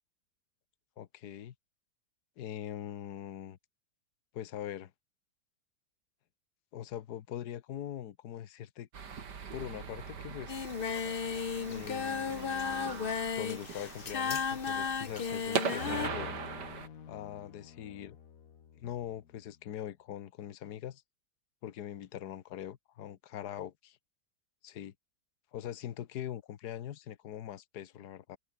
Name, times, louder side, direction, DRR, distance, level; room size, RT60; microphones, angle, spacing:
voice 1, 1.0-1.5 2.4-3.6 4.3-4.9 6.7-8.9 9.5-10.7 11.7-16.3 17.1-18.2 18.8-21.0 21.6-24.0 24.6-24.9 25.5-28.4, left 11 dB, 70° left, 1.6 m, -42 dB
sound 1, 8.9-16.9, right 6 dB, 75° right, 2.5 m, -40 dB
Singing, 10.5-16.1, left 6 dB, 35° left, 1.1 m, -34 dB
sound 2, 15.8-19.6, left 8 dB, 55° left, 1.6 m, -48 dB
open air
omnidirectional pair, 1.8 m